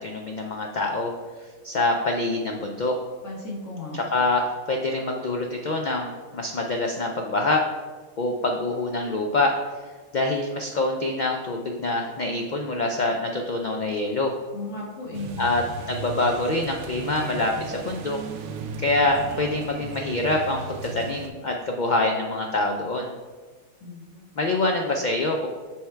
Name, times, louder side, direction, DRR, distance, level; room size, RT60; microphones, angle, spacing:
voice 1, 0.0-3.0 3.9-7.6 8.2-9.6 10.1-14.4 15.4-18.2 18.8-23.1 24.4-25.5, left 2 dB, 75° left, 2 dB, 0.4 m, -25 dB
voice 2, 3.2-4.0 14.5-15.4 23.8-24.3, left 2 dB, 55° left, -4 dB, 1.9 m, -35 dB
sound 1, 15.1-21.3, right 4 dB, 85° right, 1.0 m, -36 dB
7.2 x 3.5 x 4.4 m, 1.4 s
omnidirectional pair, 1.5 m